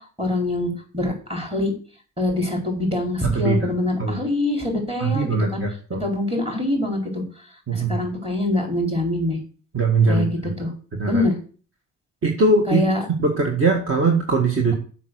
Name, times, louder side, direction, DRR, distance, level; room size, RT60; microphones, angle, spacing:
voice 1, 0.2-1.7 2.2-5.6 6.0-7.2 7.7-9.4 10.1-10.7 11.1-11.3 12.7-13.0, left 1 dB, 20° right, 2 dB, 4.5 m, -24 dB
voice 2, 3.2-3.6 4.0-4.2 5.0-6.0 7.7-8.0 9.7-10.5 11.0-11.2 12.2-12.8 13.2-14.7, right 3 dB, 45° right, 2 dB, 1.9 m, -21 dB
7.4 x 6.1 x 7.9 m, 0.40 s
cardioid pair, 90°, 30 cm